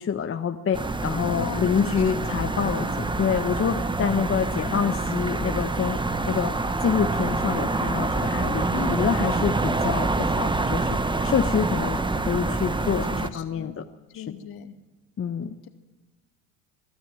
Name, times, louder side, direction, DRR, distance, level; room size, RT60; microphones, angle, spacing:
voice 1, 0.0-6.0 6.2-6.5 6.8-8.7 8.9-13.8 14.1-14.2 15.2-15.5, left 7 dB, 30° left, 7 dB, 1.1 m, -27 dB
sound 1, 0.7-13.3, right 2 dB, 10° right, 1.1 m, -26 dB
voice 2, 1.2-2.0 4.4-4.9 8.7-9.2 12.9-13.8 14.1-14.8 15.6-15.7, left 11 dB, 55° left, 6 dB, 2.4 m, -38 dB
23.5 x 12.5 x 9.3 m, 1.1 s
hypercardioid pair, 70°, 43 cm